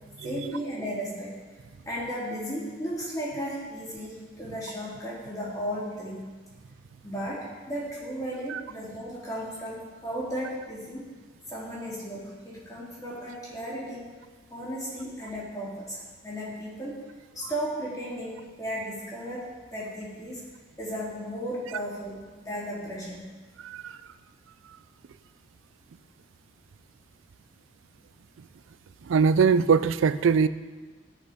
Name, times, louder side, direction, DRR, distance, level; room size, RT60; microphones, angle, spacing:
voice 1, 0.2-1.4 1.9-6.3 7.0-11.1 11.5-14.1 14.5-17.1 17.3-20.4 20.8-23.3, equal, 20° left, -7 dB, 3.6 m, -35 dB
voice 2, 23.6-24.0 29.1-30.5, right 6 dB, 85° right, 14 dB, 0.4 m, -22 dB
16.5 x 6.8 x 5.2 m, 1.4 s
head